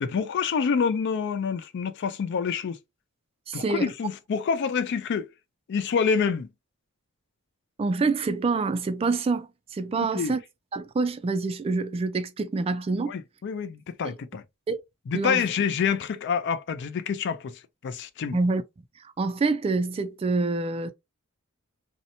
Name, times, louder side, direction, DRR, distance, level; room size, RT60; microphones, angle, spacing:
voice 1, 0.0-2.8 3.5-5.3 5.7-6.5 10.2-10.4 13.1-14.4 15.1-18.4, left 6 dB, 55° left, 0.4 m, -27 dB
voice 2, 3.5-3.9 7.8-10.4 10.7-13.1 14.0-14.1 14.7-14.8 15.1-15.4 18.3-18.6 19.2-20.9, right 3 dB, 25° right, 0.3 m, -26 dB
2.7 x 2.1 x 2.6 m
head